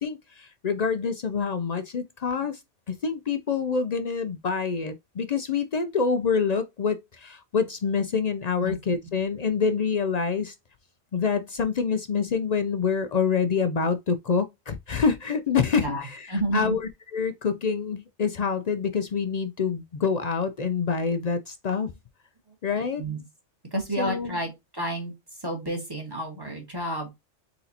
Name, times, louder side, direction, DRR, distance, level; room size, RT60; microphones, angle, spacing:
voice 1, 0.0-2.6 2.9-10.5 11.1-21.9 22.6-23.0 24.0-24.4, left 5 dB, 65° left, 0.4 m, -26 dB
voice 2, 16.3-16.8 23.0-23.2 23.7-25.1 25.4-27.1, right 1 dB, 20° right, 1.5 m, -30 dB
4.2 x 3.9 x 2.7 m
omnidirectional pair, 1.3 m